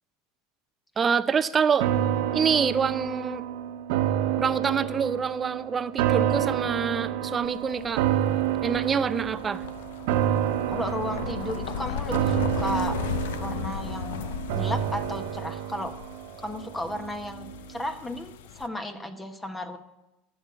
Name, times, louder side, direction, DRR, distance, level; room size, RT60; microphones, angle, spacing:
voice 1, 1.0-1.9 2.3-3.5 4.4-8.0 8.6-9.6, right 6 dB, 30° right, 13 dB, 0.7 m, -26 dB
sound 1, 1.8-17.1 17.5-17.6, right 11 dB, 70° right, 1.0 m, -28 dB
sound 2, 7.4-18.7, left 9 dB, 75° left, 0.6 m, -36 dB
voice 2, 10.7-13.0 13.4-15.9 16.4-19.8, left 1 dB, 15° left, 7 dB, 1.3 m, -34 dB
11.5 x 7.9 x 8.1 m, 0.92 s
hypercardioid pair, 90°, 0 cm